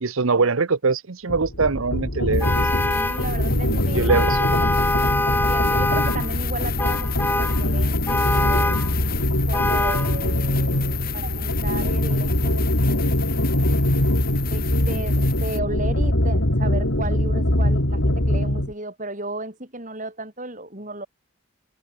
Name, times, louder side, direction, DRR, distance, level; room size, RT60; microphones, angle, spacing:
voice 1, 0.0-3.0 3.7-4.5, right 4 dB, 70° right, 0.9 m, -23 dB
sound 1, 1.3-18.7, left 1 dB, 65° left, 4.0 m, -22 dB
sound 2, 2.3-15.6, left 12 dB, 45° left, 4.3 m, -34 dB
Vehicle horn car horn honking, 2.4-3.3 4.1-6.3 6.8-7.6 8.1-8.9 9.5-10.1, left 2 dB, 10° left, 1.7 m, -24 dB
voice 2, 2.9-4.1 5.3-8.8 9.5-13.2 14.5-21.1, right 2 dB, 35° right, 5.5 m, -34 dB
open air
head